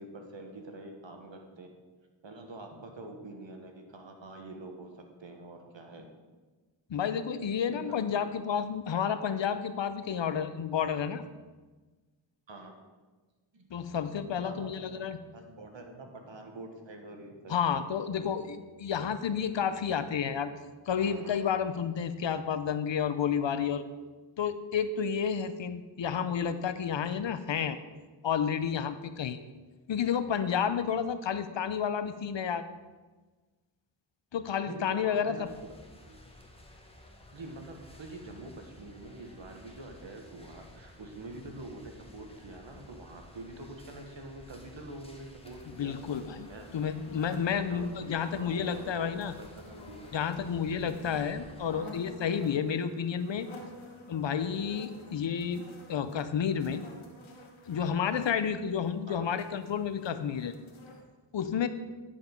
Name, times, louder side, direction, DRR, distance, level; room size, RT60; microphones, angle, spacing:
voice 1, 0.0-1.7 2.2-4.9 5.2-6.1 7.7-8.3 8.9-9.0 12.5-12.7 13.5-13.7 14.0-17.6 18.2-18.4 34.6-35.4 35.7-36.2 37.3-46.0 46.5-46.7 47.7-47.9 48.4-50.0 51.7-51.9 53.6-53.7 59.1-59.4, right 2 dB, 70° right, 3 dB, 1.5 m, -46 dB
voice 2, 6.9-11.2 13.7-15.2 17.5-20.5 20.9-23.8 24.4-27.8 28.2-29.4 29.9-32.7 34.3-35.5 45.8-46.5 46.7-49.3 50.1-53.5 54.1-56.8 57.7-60.5 61.3-61.7, left 7 dB, 65° left, 12 dB, 0.7 m, -31 dB
sound 1, 21.0-21.6, equal, 50° right, 2.6 m, -49 dB
sound 2, 35.4-51.8, left 1 dB, 10° left, 1.4 m, -53 dB
sound 3, 45.4-61.0, left 2 dB, 85° left, 1.4 m, -51 dB
10.5 x 5.2 x 5.2 m, 1.3 s
cardioid pair, 45°, 47 cm